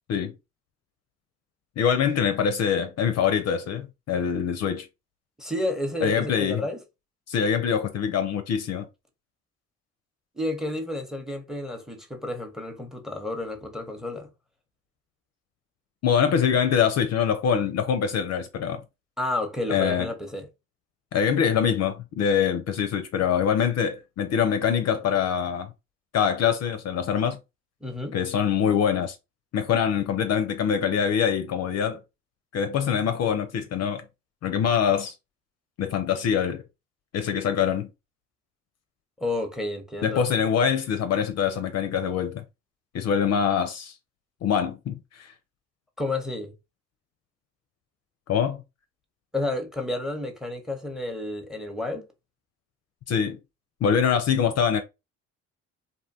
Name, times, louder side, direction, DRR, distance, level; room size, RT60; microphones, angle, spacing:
voice 1, 1.8-4.9 6.0-6.6 7.3-8.9 16.0-18.8 19.7-20.1 21.1-25.7 26.1-27.4 28.1-29.2 29.5-32.0 32.5-34.0 34.4-35.1 35.8-36.6 37.1-37.9 40.0-42.4 42.9-44.0 44.4-45.3 48.3-48.6 53.1-53.4 53.8-54.8, left 7 dB, 50° left, 0.5 m, -24 dB
voice 2, 5.4-6.8 10.4-14.3 19.2-20.5 27.8-28.2 39.2-40.2 46.0-46.5 49.3-52.1, left 2 dB, ahead, 0.7 m, -31 dB
2.6 x 2.2 x 2.6 m
hypercardioid pair, 55°, 35 cm